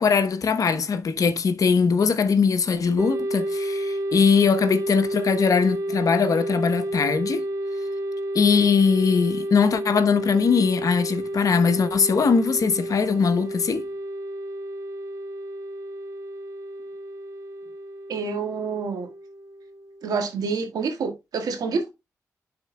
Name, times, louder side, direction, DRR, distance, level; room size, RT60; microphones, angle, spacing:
voice 1, 0.0-7.4 8.3-13.8, left 5 dB, 65° left, 0.9 m, -21 dB
sound 1, 3.0-20.3, right 1 dB, 50° right, 1.4 m, -31 dB
voice 2, 18.1-19.1 20.0-21.9, right 5 dB, 80° right, 1.7 m, -27 dB
11.5 x 4.4 x 2.3 m
supercardioid pair, 50°, 6 cm